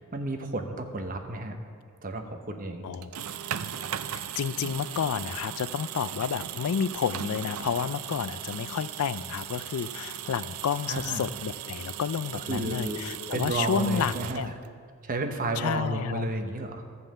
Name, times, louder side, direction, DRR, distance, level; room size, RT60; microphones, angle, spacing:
voice 1, 0.0-1.5 2.0-2.8 10.9-11.2 12.3-13.0 13.3-14.5 15.0-16.8, right 2 dB, 40° right, 5 dB, 0.9 m, -32 dB
voice 2, 2.8-3.2 4.1-14.5 15.6-16.3, left 7 dB, 80° left, 16 dB, 0.4 m, -30 dB
sound 1, 2.9-14.8, right 10 dB, 75° right, 0.5 m, -38 dB
13.0 x 5.5 x 7.5 m, 2.1 s
head